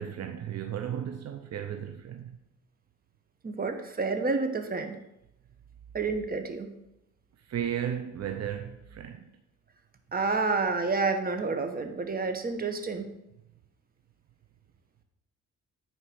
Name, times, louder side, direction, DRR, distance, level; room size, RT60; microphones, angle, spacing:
voice 1, 0.0-2.4 7.4-9.2, right 9 dB, 60° right, 0.8 m, -35 dB
voice 2, 3.4-5.0 5.9-6.7 10.1-13.1, right 4 dB, 30° right, 1.2 m, -29 dB
9.9 x 4.5 x 6.0 m
cardioid pair, 90°, 30 cm